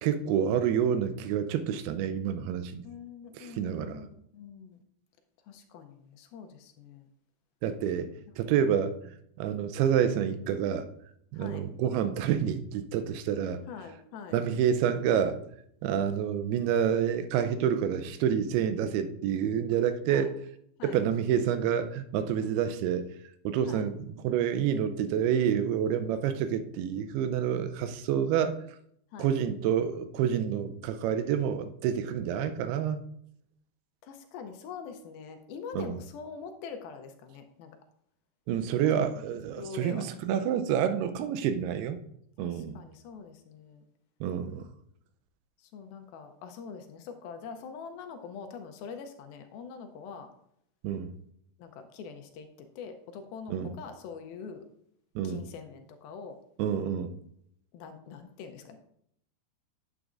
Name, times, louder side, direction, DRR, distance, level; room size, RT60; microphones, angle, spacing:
voice 1, 0.0-2.8 3.3-4.0 7.6-8.9 9.4-10.9 11.3-13.6 14.3-15.4 15.8-20.3 20.8-23.1 23.5-28.6 29.2-33.0 35.7-35.9 38.5-42.0 42.4-42.8 44.2-44.7 50.8-51.1 53.5-53.7 55.2-55.4 56.6-57.1, right 8 dB, 85° right, 9 dB, 2.6 m, -28 dB
voice 2, 2.8-4.8 5.5-7.1 11.3-11.7 13.7-14.4 20.1-20.3 20.8-21.0 23.7-23.9 29.1-29.3 34.0-37.7 39.6-40.0 42.4-43.9 45.6-50.3 51.6-52.5 52.8-54.6 55.2-56.4 57.7-58.8, left 6 dB, 80° left, 6 dB, 2.3 m, -44 dB
9.0 x 8.2 x 2.5 m, 0.71 s
omnidirectional pair, 4.6 m